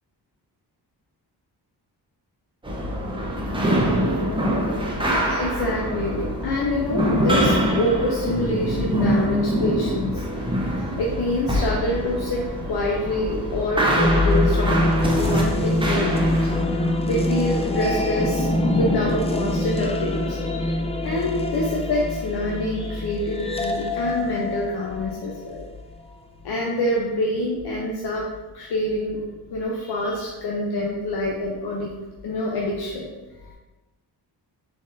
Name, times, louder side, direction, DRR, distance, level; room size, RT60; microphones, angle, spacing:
sound 1, 2.6-16.6, equal, 10° right, 0.7 m, -24 dB
voice 1, 5.3-10.2 10.6-25.7 26.1-26.2 26.4-29.2 29.5-31.9 32.2-33.1 33.4-33.5, left 1 dB, 60° left, -2 dB, 0.7 m, -26 dB
sound 2, 13.9-25.7, left 1 dB, 15° left, 0.3 m, -24 dB
3.9 x 3.6 x 2.6 m, 1.2 s
cardioid pair, 70°, 44 cm